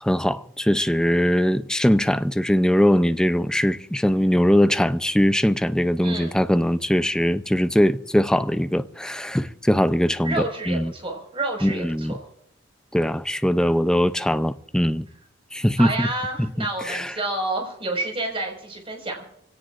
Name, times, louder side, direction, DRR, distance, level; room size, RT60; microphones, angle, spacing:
voice 1, 0.0-10.9 11.6-12.2 12.9-15.1 15.5-16.1 16.4-17.1, equal, 5° left, 0.6 m, -21 dB
voice 2, 6.0-6.3 10.2-12.2 15.8-19.2, right 2 dB, 30° right, 5.3 m, -29 dB
25.0 x 17.5 x 2.5 m
head